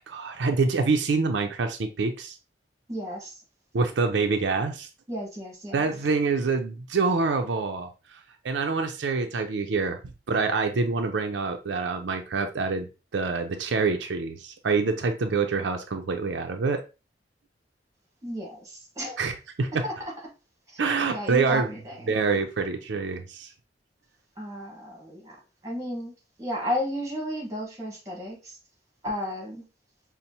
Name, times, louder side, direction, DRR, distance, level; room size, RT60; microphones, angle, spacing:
voice 1, 0.1-2.4 3.7-4.9 5.7-8.2 8.4-10.0 10.3-16.8 19.2-19.8 20.8-21.7 22.1-23.5, right 4 dB, 85° right, 0.5 m, -26 dB
voice 2, 2.9-3.4 5.1-5.9 18.2-19.3 19.8-19.9 20.7-20.8 21.1-22.1 24.4-25.3 25.6-26.1 26.4-28.6 29.0-29.7, equal, 20° right, 1.3 m, -33 dB
5.2 x 2.1 x 2.8 m
head